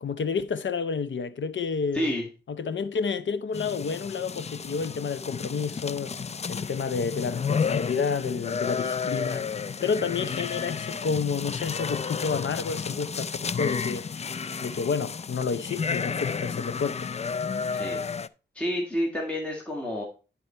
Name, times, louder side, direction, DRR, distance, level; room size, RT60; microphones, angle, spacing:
voice 1, 0.0-2.1 2.5-6.1 6.5-9.5 9.8-14.1 14.6-17.1, left 5 dB, 85° left, 0.7 m, -30 dB
voice 2, 1.9-2.2 17.7-18.1 18.6-20.0, equal, 5° left, 1.8 m, -29 dB
sound 1, 3.5-18.3, left 6 dB, 35° left, 0.3 m, -32 dB
11.0 x 4.2 x 4.3 m
wide cardioid pair, 115°, 19 cm